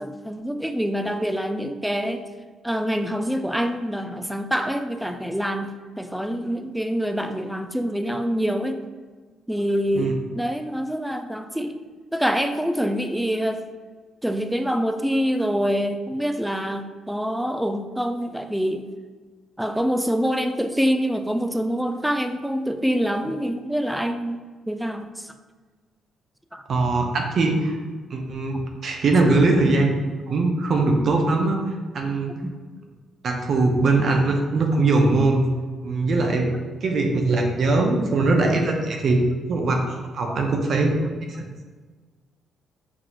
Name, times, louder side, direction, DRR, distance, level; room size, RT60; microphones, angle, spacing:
voice 1, 0.0-2.2 2.6-5.7 6.0-8.8 9.5-11.7 12.1-13.6 14.2-18.9 19.6-25.3 26.5-26.6 29.2-29.3 32.4-32.6 40.3-40.4 41.0-41.1, equal, 5° right, 7 dB, 0.4 m, -25 dB
voice 2, 26.7-27.8 28.1-29.9 30.3-31.6 31.9-32.3 33.2-35.4 35.8-36.5 36.8-39.2 39.5-39.8 40.1-40.9 41.4-41.5, right 3 dB, 55° right, 2 dB, 0.7 m, -21 dB
6.0 x 2.5 x 3.0 m, 1.4 s
cardioid pair, 90°, 0 cm